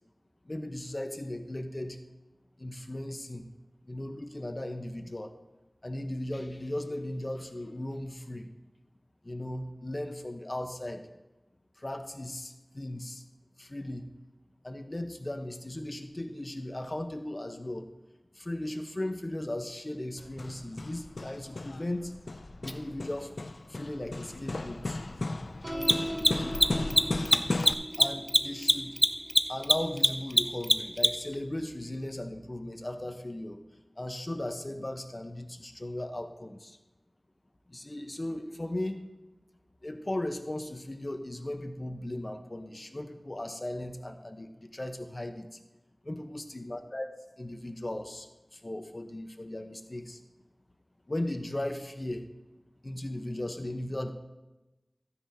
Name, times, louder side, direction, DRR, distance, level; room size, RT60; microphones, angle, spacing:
voice 1, 0.4-2.0 2.6-3.5 3.9-5.3 5.8-8.5 9.2-11.0 11.8-13.2 13.6-14.1 14.6-17.9 18.3-22.1 22.6-23.4 23.7-25.0 28.0-29.0 29.5-33.6 34.0-36.8 37.7-39.0 39.8-45.6 46.0-47.1 47.4-50.2 51.1-52.3 52.8-54.1, left 1 dB, 40° left, 6 dB, 1.0 m, -37 dB
Hammer, 20.2-27.7, left 2 dB, 75° left, 0.4 m, -36 dB
Mechanisms, 22.7-22.8 25.7-31.3, equal, ahead, 0.7 m, -23 dB
sound 1, 25.6-32.3, equal, 80° right, 2.5 m, -41 dB
14.5 x 9.8 x 2.8 m, 1.0 s
wide cardioid pair, 45°, 0 cm